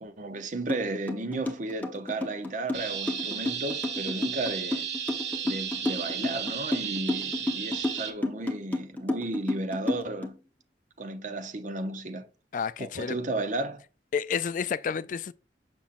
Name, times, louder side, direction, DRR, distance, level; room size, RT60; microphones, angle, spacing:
voice 1, 0.0-4.9 5.4-10.4 11.0-12.3 12.8-13.8, right 2 dB, 45° right, 0.7 m, -34 dB
sound 1, 0.7-0.8 1.1-10.3, left 2 dB, 10° left, 0.9 m, -31 dB
sound 2, 2.7-8.1, right 8 dB, 75° right, 1.1 m, -34 dB
voice 2, 12.5-13.2 14.1-15.3, left 6 dB, 45° left, 0.3 m, -30 dB
7.1 x 6.1 x 2.5 m
head